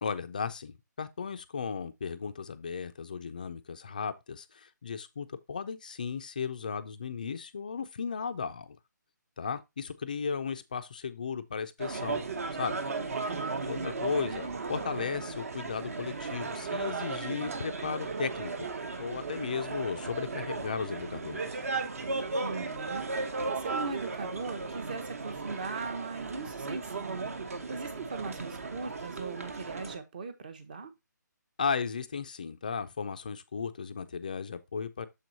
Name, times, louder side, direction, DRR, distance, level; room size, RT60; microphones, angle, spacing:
voice 1, 0.0-8.8 9.4-12.2 12.6-12.8 13.7-18.7 19.0-21.6 31.6-35.1, left 6 dB, 25° left, 0.4 m, -35 dB
sound 1, 11.8-30.0, right 4 dB, 50° right, 1.1 m, -36 dB
voice 2, 13.2-13.9 22.4-23.1 23.5-30.9, right 4 dB, 25° right, 0.8 m, -39 dB
6.9 x 4.6 x 3.9 m
hypercardioid pair, 175°, 10 cm